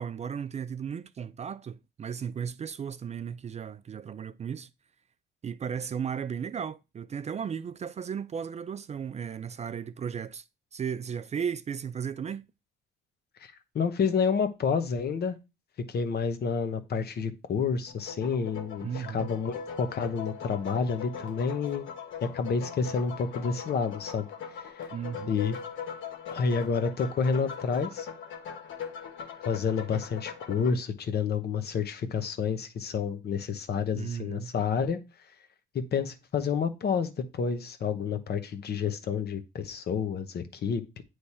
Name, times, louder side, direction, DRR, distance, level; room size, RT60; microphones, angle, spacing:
voice 1, 0.0-4.7 5.4-10.4 10.7-12.4 18.8-19.3 24.9-25.3 33.9-34.5, right 7 dB, 35° right, 0.3 m, -35 dB
voice 2, 13.4-15.4 15.9-21.8 22.2-24.3 24.6-24.9 25.3-25.6 26.3-28.1 29.4-35.0 35.7-41.0, left 6 dB, 55° left, 0.9 m, -29 dB
sound 1, 17.9-30.7, left 7 dB, 75° left, 1.1 m, -40 dB
8.3 x 3.2 x 4.2 m
cardioid pair, 90°, 20 cm